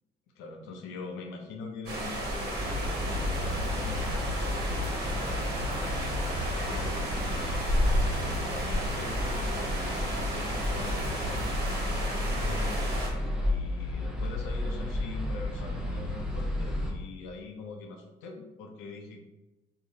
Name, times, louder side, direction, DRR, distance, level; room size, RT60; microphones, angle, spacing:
voice 1, 0.4-4.4 6.7-12.8 13.4-19.2, left 4 dB, 80° left, 3 dB, 0.5 m, -43 dB
sound 1, 1.9-13.1, equal, 50° right, 0.9 m, -32 dB
sound 2, 2.5-16.9, left 1 dB, 5° right, 0.6 m, -33 dB
2.7 x 2.1 x 2.6 m, 0.95 s
supercardioid pair, 70°, 20 cm